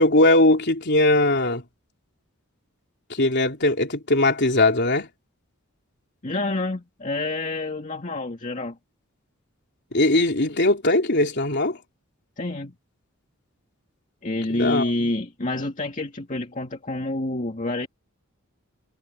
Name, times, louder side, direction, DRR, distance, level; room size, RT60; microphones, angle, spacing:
voice 1, 0.0-1.6 3.1-5.1 9.9-11.8 14.5-14.9, left 2 dB, 55° left, 3.6 m, -20 dB
voice 2, 6.2-8.8 12.4-12.7 14.2-17.9, left 2 dB, 35° left, 2.0 m, -28 dB
head